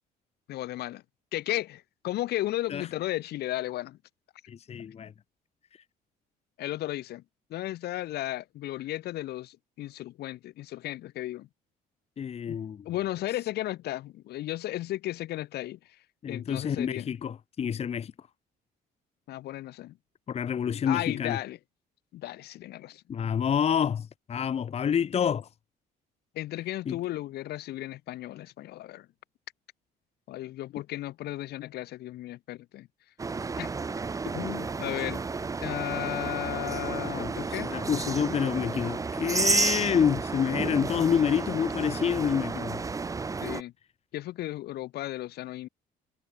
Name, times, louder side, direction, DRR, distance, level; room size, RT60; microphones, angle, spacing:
voice 1, 0.5-1.0 1.3-4.0 6.6-7.2 7.5-11.5 12.5-12.6 12.9-15.8 16.3-17.1 19.3-20.0 20.9-21.6 22.1-23.0 26.4-29.1 30.3-32.9 33.6-33.7 34.3-35.2 35.6-37.7 43.4-43.7 44.1-45.7, left 15 dB, 70° left, 1.9 m, -34 dB
voice 2, 4.5-5.1 12.2-12.9 16.2-18.1 20.3-21.4 23.1-25.5 26.9-27.0 37.1-42.8, left 8 dB, 40° left, 1.0 m, -28 dB
sound 1, 33.2-43.6, right 4 dB, 20° right, 0.8 m, -31 dB
cardioid pair, 110°, 17 cm